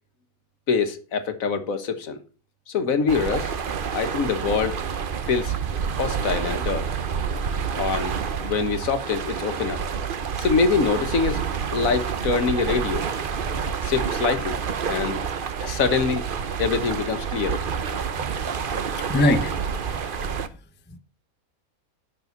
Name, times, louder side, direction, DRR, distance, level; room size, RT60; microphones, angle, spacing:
voice 1, 0.7-2.2 2.7-3.5 3.9-4.8 5.3-5.5 5.9-6.9 7.8-9.8 10.4-11.4 11.7-13.1 13.8-14.6 14.9-15.2 15.6-16.2 16.6-18.0, left 5 dB, 70° left, 1.5 m, -24 dB
sound 1, 3.1-20.5, right 6 dB, 45° right, 0.8 m, -28 dB
voice 2, 18.2-18.5 18.9-20.0 20.9-21.0, left 1 dB, 10° left, 0.6 m, -24 dB
11.0 x 6.2 x 5.8 m
omnidirectional pair, 1.5 m